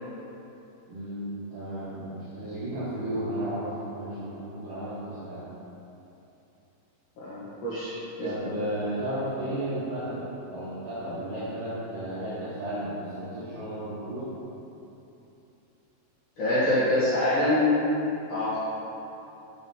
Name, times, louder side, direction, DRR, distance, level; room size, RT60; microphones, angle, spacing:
voice 1, 0.9-5.5 8.2-10.2 10.5-14.3, right 1 dB, 70° right, -11 dB, 2.1 m, -33 dB
voice 2, 7.2-8.5 16.4-17.8 18.3-18.6, left 1 dB, 55° left, -12 dB, 2.4 m, -25 dB
6.3 x 6.1 x 5.6 m, 2.9 s
omnidirectional pair, 5.5 m